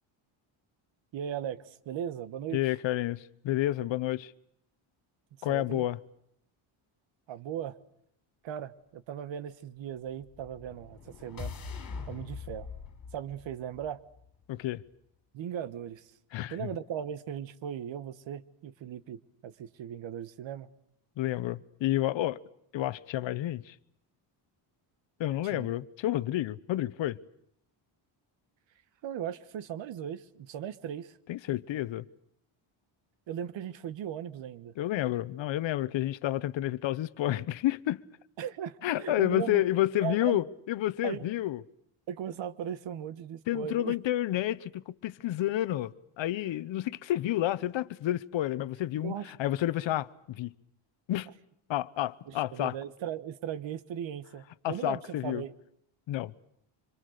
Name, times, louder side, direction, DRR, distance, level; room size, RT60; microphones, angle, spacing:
voice 1, 1.1-2.6 5.5-5.8 7.3-7.8 8.4-11.6 12.1-12.7 13.1-14.0 15.3-16.1 16.5-20.7 25.4-25.7 29.0-31.2 33.3-34.7 38.4-39.6 40.0-40.4 41.0-41.2 42.1-43.9 49.0-49.3 52.3-55.5, right 9 dB, 65° right, 1.4 m, -38 dB
voice 2, 2.5-4.3 5.4-6.0 14.5-14.8 16.3-16.7 21.2-22.4 22.7-23.8 25.2-27.2 31.3-32.1 34.8-38.1 38.8-41.6 43.5-50.5 51.1-51.3 51.7-52.7 54.6-55.4 56.1-56.3, left 14 dB, 65° left, 1.0 m, -30 dB
sound 1, 10.2-14.4, left 5 dB, 45° left, 4.2 m, -43 dB
26.5 x 26.0 x 6.6 m
cardioid pair, 160°, 49 cm